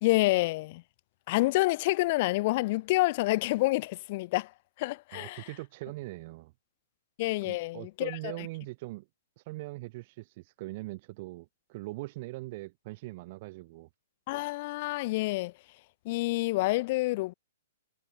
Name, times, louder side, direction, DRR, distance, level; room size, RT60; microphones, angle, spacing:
voice 1, 0.0-0.8 1.3-4.5 4.8-5.5 7.2-8.3 14.3-15.5 16.0-17.3, left 20 dB, 40° left, 1.6 m, -28 dB
voice 2, 5.1-6.5 7.4-9.1 9.4-13.9, right 21 dB, 40° right, 3.5 m, -41 dB
figure-of-eight pair, 115°, 0 cm